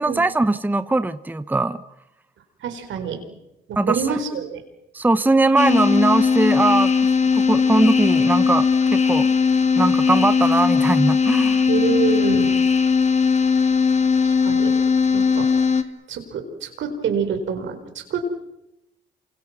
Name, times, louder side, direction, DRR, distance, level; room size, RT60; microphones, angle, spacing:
voice 1, 0.0-1.8 3.8-4.2 4.9-9.3 9.8-11.7, right 2 dB, 10° right, 13 dB, 0.9 m, -20 dB
voice 2, 2.6-3.2 3.7-4.6 11.7-12.6 14.2-14.7 15.1-15.5 16.1-18.3, right 6 dB, 75° right, 7 dB, 4.6 m, -26 dB
sound 1, 5.6-15.8, left 5 dB, 35° left, 2.2 m, -18 dB
28.0 x 26.0 x 6.1 m, 0.88 s
cardioid pair, 90°, 20 cm